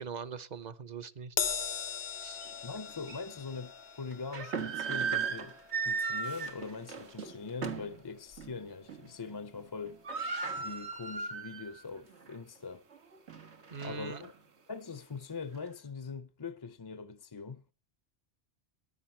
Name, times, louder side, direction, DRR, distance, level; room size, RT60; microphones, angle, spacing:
voice 1, 0.0-1.4 2.2-2.4 13.7-14.2, right 7 dB, 45° right, 0.9 m, -41 dB
Crash cymbal, 1.4-8.0 8.3-8.6 9.6-9.7, left 7 dB, 65° left, 1.0 m, -40 dB
sound 1, 2.4-2.5 3.1-3.2 4.1-8.0 8.4-8.5 8.9-9.3 9.6-9.7 9.8-11.8 12.2-12.3 12.9-14.3, right 5 dB, 90° right, 1.8 m, -36 dB
voice 2, 2.6-5.5 5.8-10.0 10.6-12.8 13.8-14.3 14.7-17.6, left 4 dB, 30° left, 0.6 m, -42 dB
14.0 x 11.0 x 4.4 m
omnidirectional pair, 1.1 m